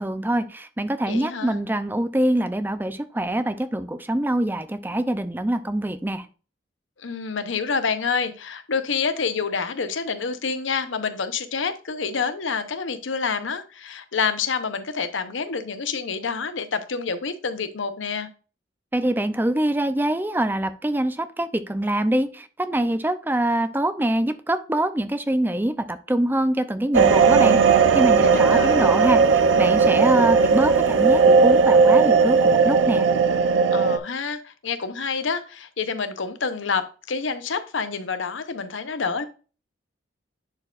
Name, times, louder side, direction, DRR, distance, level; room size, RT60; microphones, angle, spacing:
voice 1, 0.0-6.3 18.9-33.1, right 1 dB, 10° right, 11 dB, 0.5 m, -24 dB
voice 2, 1.0-1.6 7.0-18.3 28.2-28.8 33.7-39.2, left 5 dB, 85° left, 11 dB, 0.8 m, -28 dB
sound 1, 26.9-34.0, right 5 dB, 80° right, 0.6 m, -17 dB
10.5 x 4.5 x 2.4 m, 0.35 s
head